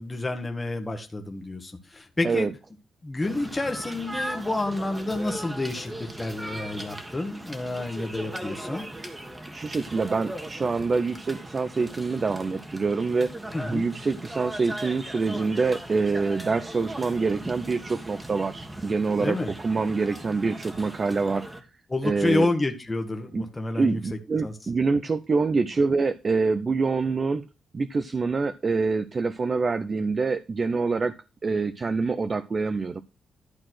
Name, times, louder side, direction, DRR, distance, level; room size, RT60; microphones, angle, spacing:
voice 1, 0.0-2.5 3.0-8.9 13.5-13.9 19.2-19.5 21.9-24.0 24.4-24.5, left 2 dB, 15° left, 4 dB, 1.4 m, -29 dB
sound 1, 3.2-21.6, right 1 dB, 15° right, 1.5 m, -38 dB
voice 2, 9.5-13.3 13.7-19.4 19.6-21.5 22.0-22.5 23.3-23.4 23.7-27.5 27.7-31.1 31.4-33.0, right 4 dB, 35° right, 11 dB, 0.5 m, -26 dB
11.5 x 4.2 x 6.2 m, 0.30 s
cardioid pair, 110°, 0 cm